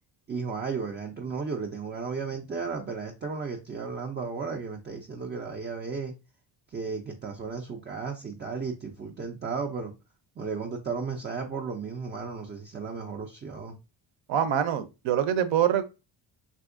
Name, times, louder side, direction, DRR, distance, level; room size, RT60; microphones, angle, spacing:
voice 1, 0.3-6.1 6.7-9.9 10.4-13.8, right 5 dB, 25° right, 0.3 m, -34 dB
voice 2, 14.3-15.8, right 9 dB, 65° right, 0.6 m, -25 dB
3.5 x 2.7 x 2.4 m
cardioid pair, 105°, 49 cm